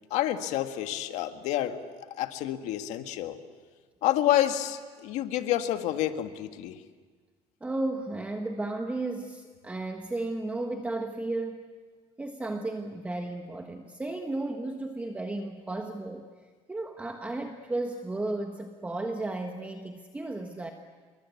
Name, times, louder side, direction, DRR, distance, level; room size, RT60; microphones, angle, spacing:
voice 1, 0.1-1.8 2.1-3.4 4.0-6.8, left 12 dB, 75° left, 7 dB, 1.7 m, -28 dB
voice 2, 7.6-11.6 12.2-16.2 16.7-20.7, right 2 dB, 10° right, 4 dB, 1.4 m, -34 dB
28.0 x 23.5 x 8.4 m, 1.5 s
cardioid pair, 135°, 12 cm